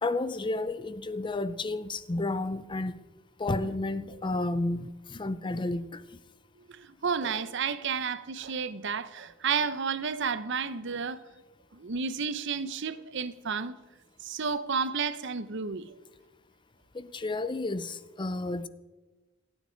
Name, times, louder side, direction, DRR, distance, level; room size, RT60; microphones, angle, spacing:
voice 1, 0.0-2.9 3.4-6.0 16.9-18.7, left 2 dB, 25° left, 0.6 m, -31 dB
voice 2, 6.8-11.2 11.7-13.8 14.2-15.9, right 5 dB, 60° right, 0.8 m, -31 dB
28.0 x 9.6 x 4.5 m
head